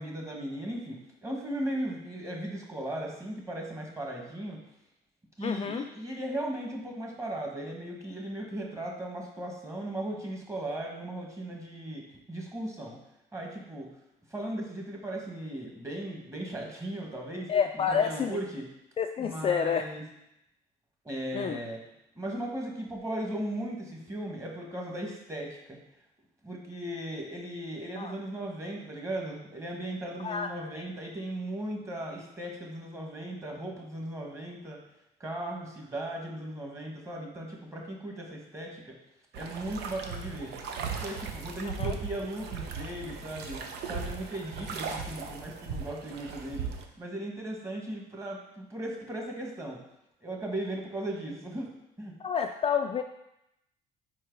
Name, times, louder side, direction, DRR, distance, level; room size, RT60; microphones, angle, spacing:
voice 1, 0.0-4.6 5.4-13.0 13.3-13.9 14.3-17.5 17.9-18.6 19.2-20.0 21.0-21.8 22.2-25.8 26.4-34.8 35.2-38.9 39.3-40.5 41.0-43.6 43.9-46.7 47.0-49.8 50.2-51.7 52.0-52.1, right 1 dB, 15° right, 0 dB, 1.4 m, -37 dB
voice 2, 5.4-5.9 17.5-18.4 19.0-19.8 21.3-21.6 28.0-28.1 30.2-30.5 30.8-30.9 41.6-41.9 52.2-53.0, left 7 dB, 35° left, 5 dB, 0.3 m, -29 dB
sound 1, 39.3-46.8, right 5 dB, 80° right, 0.8 m, -38 dB
4.6 x 4.6 x 4.6 m, 0.84 s
cardioid pair, 110°, 17 cm